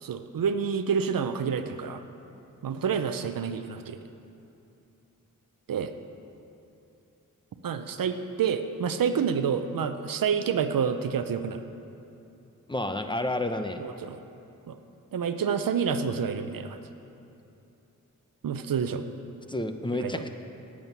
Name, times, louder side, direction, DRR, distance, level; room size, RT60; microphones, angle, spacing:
voice 1, 0.0-2.0 2.6-4.0 5.7-5.9 7.6-11.6 13.8-14.2 14.7-14.8 15.1-16.8 18.4-19.0 19.9-20.2, right 6 dB, 80° right, 9 dB, 0.7 m, -28 dB
voice 2, 12.7-13.8 19.5-20.3, left 1 dB, 15° left, 7 dB, 0.8 m, -30 dB
10.5 x 7.4 x 9.5 m, 2.8 s
cardioid pair, 65°, 33 cm